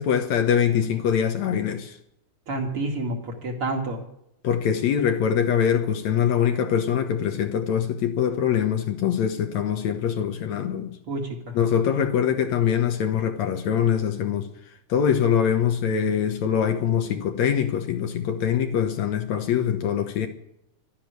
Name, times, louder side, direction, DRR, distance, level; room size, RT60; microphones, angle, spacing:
voice 1, 0.0-2.0 4.4-11.0 11.5-14.5 14.9-20.3, left 8 dB, 65° left, 2.2 m, -23 dB
voice 2, 2.5-4.0 11.1-11.6, right 2 dB, 45° right, 2.8 m, -29 dB
12.5 x 10.5 x 9.4 m
omnidirectional pair, 3.7 m